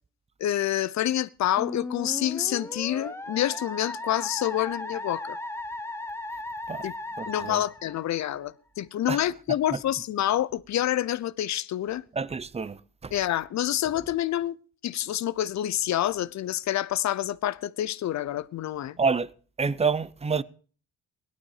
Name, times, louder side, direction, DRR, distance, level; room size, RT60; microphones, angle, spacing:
voice 1, 0.4-5.4 6.8-6.9 7.3-12.0 13.1-14.6 14.8-19.0, left 12 dB, 65° left, 0.8 m, -27 dB
Musical instrument, 1.6-8.4, left 2 dB, 10° left, 1.1 m, -36 dB
voice 2, 7.2-7.6 9.1-9.2 12.1-13.1 19.0-19.3 19.6-20.4, right 5 dB, 20° right, 0.7 m, -28 dB
17.5 x 11.5 x 4.9 m
cardioid pair, 90°, 30 cm